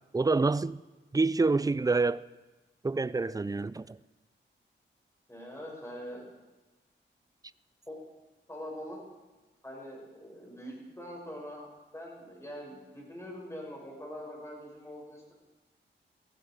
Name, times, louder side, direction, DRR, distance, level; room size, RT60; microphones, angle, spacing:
voice 1, 0.1-0.8 1.1-2.2 2.8-4.0, right 3 dB, 20° right, 18 dB, 0.4 m, -27 dB
voice 2, 5.3-6.3 7.9-8.0 8.5-9.0 9.6-11.7 11.9-15.3, equal, 15° left, -3 dB, 7.3 m, -43 dB
17.5 x 15.0 x 5.0 m, 1.1 s
wide cardioid pair, 85°, 20 cm